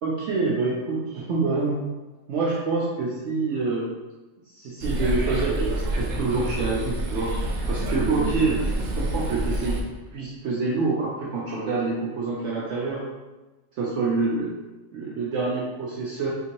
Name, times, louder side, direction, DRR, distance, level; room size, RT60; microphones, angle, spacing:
voice 1, 0.0-1.8 2.3-3.9 4.5-9.8 10.1-13.0 13.8-14.5 14.9-16.3, right 3 dB, 70° right, -5 dB, 0.8 m, -26 dB
sound 1, 4.8-9.8, right 1 dB, 85° right, 0.3 m, -27 dB
3.6 x 2.6 x 2.9 m, 1.1 s
omnidirectional pair, 1.4 m